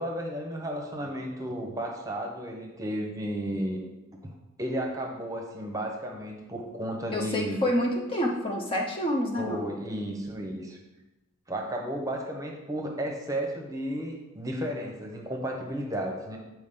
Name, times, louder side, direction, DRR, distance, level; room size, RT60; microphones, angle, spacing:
voice 1, 0.0-3.8 4.6-7.6 9.4-10.8 11.5-16.4, equal, 15° right, 1 dB, 0.9 m, -33 dB
voice 2, 7.1-9.7, left 1 dB, 25° left, 0 dB, 0.6 m, -28 dB
8.3 x 4.7 x 3.7 m, 1.0 s
head